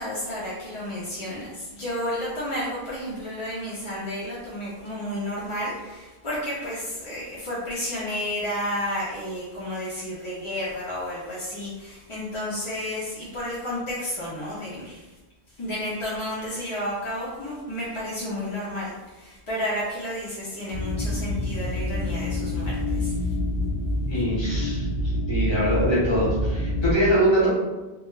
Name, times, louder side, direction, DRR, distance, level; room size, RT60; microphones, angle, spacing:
voice 1, 0.0-15.0 15.6-23.1, left 1 dB, 45° left, -8 dB, 0.4 m, -31 dB
sound 1, 20.7-26.9, left 1 dB, 60° left, 0.8 m, -27 dB
voice 2, 24.1-24.8 25.3-27.6, equal, 25° left, -8 dB, 0.8 m, -23 dB
2.2 x 2.1 x 3.0 m, 1.2 s
omnidirectional pair, 1.1 m